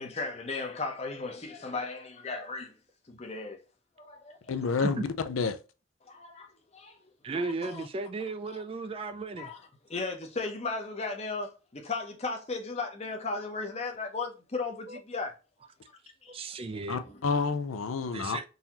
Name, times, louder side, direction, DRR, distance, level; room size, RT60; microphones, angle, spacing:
voice 1, 0.0-2.7 3.1-3.6 4.0-4.7 6.1-7.0 7.4-7.9 9.4-9.6 9.9-15.3 16.2-16.4 17.1-17.2, left 3 dB, 30° left, 0.7 m, -36 dB
voice 2, 4.5-5.6 16.9-18.4, left 5 dB, 85° left, 0.5 m, -29 dB
voice 3, 7.2-9.5 14.9-15.0 16.3-17.0 18.1-18.5, right 3 dB, 25° right, 0.3 m, -35 dB
3.9 x 2.7 x 2.8 m
head